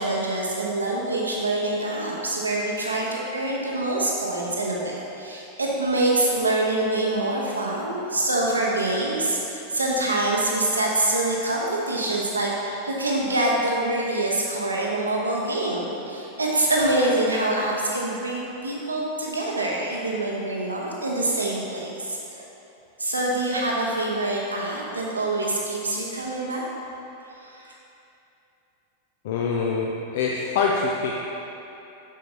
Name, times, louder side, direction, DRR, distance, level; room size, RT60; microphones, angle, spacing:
voice 1, 0.0-22.4 23.0-26.6 27.4-27.7, right 2 dB, 80° right, -3 dB, 1.0 m, -25 dB
voice 2, 29.2-31.3, left 4 dB, 55° left, -2 dB, 0.5 m, -25 dB
7.4 x 6.6 x 2.8 m, 2.9 s
figure-of-eight pair, 90°, 0 cm